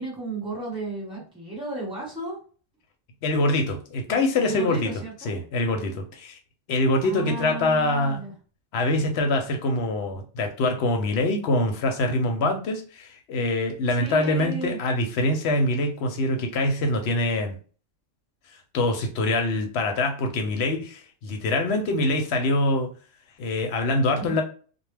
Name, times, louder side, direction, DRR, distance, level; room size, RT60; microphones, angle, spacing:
voice 1, 0.0-2.4 4.1-5.3 7.0-8.3 14.0-14.8 24.2-24.4, right 3 dB, 5° right, -3 dB, 1.1 m, -34 dB
voice 2, 3.2-4.9 5.2-6.4 6.7-8.2 8.7-17.6 18.7-22.9 23.4-24.4, left 2 dB, 65° left, 5 dB, 0.7 m, -24 dB
2.2 x 2.1 x 3.2 m, 0.38 s
omnidirectional pair, 1.3 m